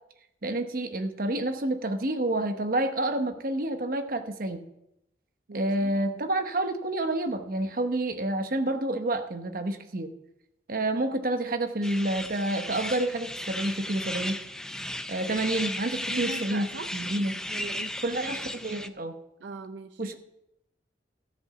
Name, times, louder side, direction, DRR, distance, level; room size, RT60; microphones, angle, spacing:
voice 1, 0.4-4.6 5.5-10.1 10.7-14.4 15.1-17.3 18.0-19.1 20.0-20.1, right 1 dB, 55° right, 6 dB, 0.9 m, -29 dB
voice 2, 5.5-6.0 16.0-16.9 17.5-17.9 19.4-20.0, right 3 dB, 85° right, 9 dB, 0.6 m, -39 dB
sound 1, 11.8-18.9, left 1 dB, 5° left, 0.4 m, -35 dB
14.0 x 5.4 x 6.8 m, 0.86 s
head